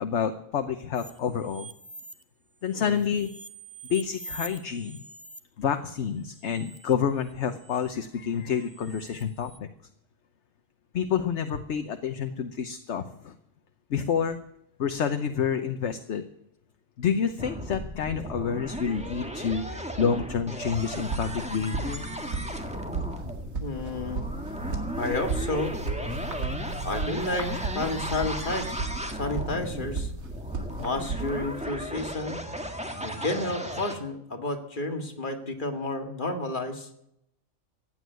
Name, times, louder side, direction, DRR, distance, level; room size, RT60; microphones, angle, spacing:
voice 1, 0.0-1.7 2.6-3.3 3.9-5.0 5.6-9.7 10.9-13.3 13.9-14.4 14.8-16.2 17.0-22.1, left 7 dB, 60° left, 8 dB, 1.1 m, -28 dB
sound 1, 0.9-2.2 2.6-5.4 6.3-6.9 7.3-7.9 8.5-9.6, right 3 dB, 20° right, 1.2 m, -45 dB
sound 2, 17.4-34.0, equal, 5° right, 1.5 m, -36 dB
sound 3, 20.7-31.6, right 3 dB, 85° right, 2.5 m, -35 dB
voice 2, 23.6-24.3 25.0-25.7 26.8-30.1 30.8-32.4 33.0-36.9, left 2 dB, 35° left, 4 dB, 2.1 m, -31 dB
15.5 x 9.3 x 9.2 m, 0.78 s
omnidirectional pair, 1.4 m